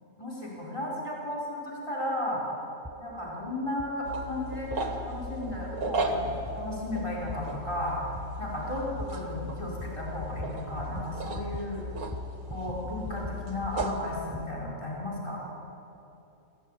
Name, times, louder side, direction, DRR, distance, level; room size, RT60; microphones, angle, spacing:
voice 1, 0.2-2.4 3.0-11.8 12.5-15.4, left 1 dB, 20° left, -5 dB, 4.7 m, -34 dB
sound 1, 2.8-3.0 3.8-3.9 4.7-4.8 5.5-5.6 6.5-6.6 7.3-7.4 8.2-8.3 9.0-9.1 9.8-9.9 10.2-10.5 10.8-11.1 11.3-11.6 11.9-12.8 13.1-14.5, left 1 dB, 5° right, 0.6 m, -41 dB
sound 2, 4.0-14.0, right 1 dB, 80° right, 2.4 m, -36 dB
26.0 x 17.0 x 9.2 m, 3.0 s
omnidirectional pair, 1.5 m